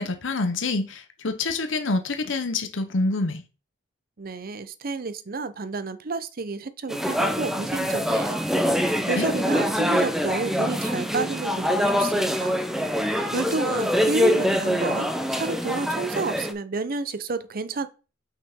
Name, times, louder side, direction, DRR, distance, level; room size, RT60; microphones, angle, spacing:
voice 1, 0.0-3.4 9.2-9.3, left 3 dB, 70° left, 0.8 m, -26 dB
voice 2, 4.2-8.4 8.7-12.6 13.3-17.9, right 4 dB, 50° right, 0.6 m, -30 dB
sound 1, 6.9-16.5, equal, ahead, 0.6 m, -24 dB
5.9 x 5.7 x 3.6 m
head